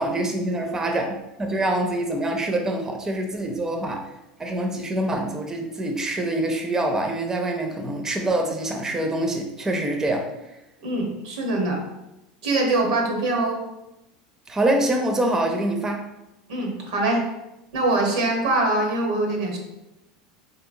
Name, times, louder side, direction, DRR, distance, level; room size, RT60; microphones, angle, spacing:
voice 1, 0.0-4.0 4.4-10.3 14.5-16.1, right 1 dB, 15° right, 3 dB, 0.4 m, -25 dB
voice 2, 10.8-11.8 12.4-13.6 16.5-17.2 17.7-19.6, right 2 dB, 80° right, 1 dB, 0.9 m, -23 dB
3.4 x 2.8 x 2.5 m, 0.91 s
supercardioid pair, 105°, 3 cm